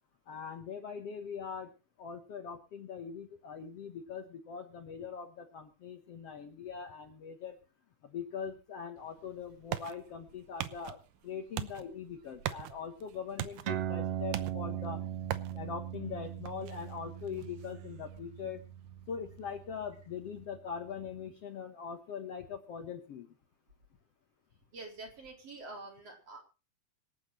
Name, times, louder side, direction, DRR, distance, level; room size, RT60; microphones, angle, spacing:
voice 1, 0.3-1.7 2.0-7.6 8.0-15.0 15.5-18.6 19.1-23.3, left 6 dB, 55° left, 6 dB, 2.1 m, -42 dB
sound 1, 9.0-20.5, right 12 dB, 85° right, 2.5 m, -44 dB
sound 2, 13.6-20.6, right 11 dB, 65° right, 1.7 m, -39 dB
voice 2, 24.7-26.4, right 2 dB, 45° right, 1 dB, 4.9 m, -46 dB
25.0 x 9.0 x 3.1 m, 0.32 s
omnidirectional pair, 3.7 m